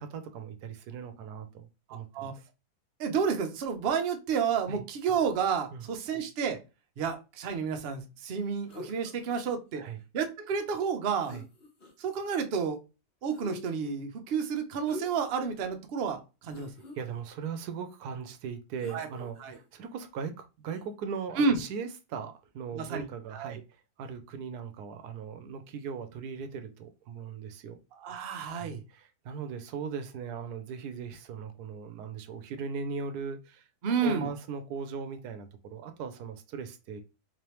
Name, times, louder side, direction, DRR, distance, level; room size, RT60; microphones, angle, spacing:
voice 1, 0.0-2.5 4.7-4.8 5.7-5.8 9.7-10.0 11.3-11.4 17.0-23.6 24.0-27.8 28.5-37.0, right 6 dB, 85° right, 1.1 m, -39 dB
voice 2, 3.0-6.6 7.0-9.8 10.1-11.3 12.0-12.8 13.2-16.7 18.9-19.1 19.4-19.6 21.4-21.6 22.8-23.0 23.3-23.6 28.0-28.8 33.8-34.3, right 6 dB, 55° right, 0.7 m, -30 dB
sound 1, 8.7-9.3 10.9-11.0 11.2-12.1 13.3-13.9 14.8-15.4 15.8-15.9 16.4-17.0 18.8-19.6 20.6-20.8, left 3 dB, 45° left, 1.2 m, -46 dB
4.0 x 3.3 x 3.0 m
omnidirectional pair, 1.7 m